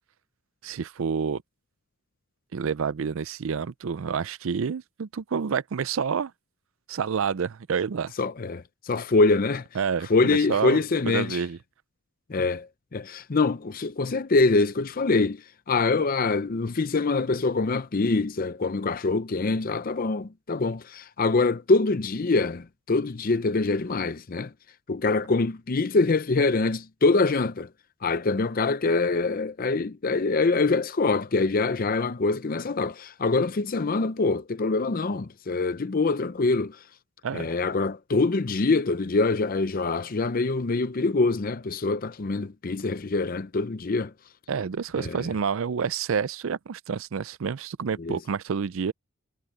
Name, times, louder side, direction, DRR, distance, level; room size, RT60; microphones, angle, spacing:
voice 1, 0.6-1.4 2.5-6.3 6.9-8.1 9.8-11.6 37.2-37.5 44.5-48.9, right 6 dB, 65° right, 0.4 m, -28 dB
voice 2, 8.2-9.7 10.1-11.4 12.3-24.5 24.9-27.7 28.0-36.8 37.3-44.1 45.0-45.2 48.0-48.2, left 3 dB, 40° left, 0.6 m, -24 dB
head